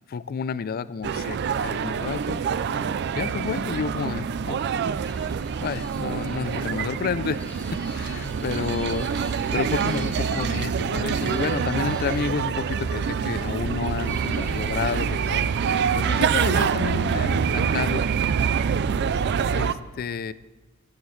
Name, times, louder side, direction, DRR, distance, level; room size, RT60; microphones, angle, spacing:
voice 1, 0.0-2.4 2.7-2.8 3.2-4.6 5.6-7.5 7.7-18.0 19.5-20.3, left 5 dB, 45° left, 16 dB, 0.3 m, -30 dB
sound 1, 1.0-19.7, right 6 dB, 50° right, 0.3 m, -26 dB
sound 2, 5.0-10.5 11.1-12.3 14.0-15.5, left 2 dB, 5° left, 0.9 m, -47 dB
18.0 x 7.3 x 3.2 m, 1.1 s
head